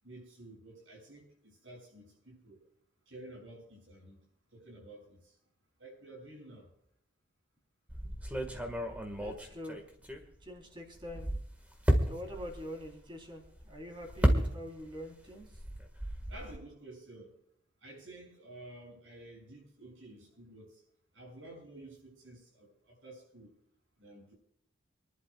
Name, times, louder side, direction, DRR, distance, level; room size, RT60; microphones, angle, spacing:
voice 1, 0.0-2.6 3.1-4.2 4.5-5.4 5.8-6.7 16.3-17.4 17.8-20.8 21.1-23.5 24.0-24.3, right 1 dB, 85° right, -2 dB, 7.0 m, -51 dB
sound 1, 7.9-10.6 10.9-15.0 15.3-16.6, equal, 10° right, 1.7 m, -32 dB
voice 2, 9.2-9.8 10.4-11.3 12.1-15.5, left 1 dB, 25° right, 2 dB, 3.5 m, -44 dB
27.5 x 11.5 x 2.4 m, 0.72 s
head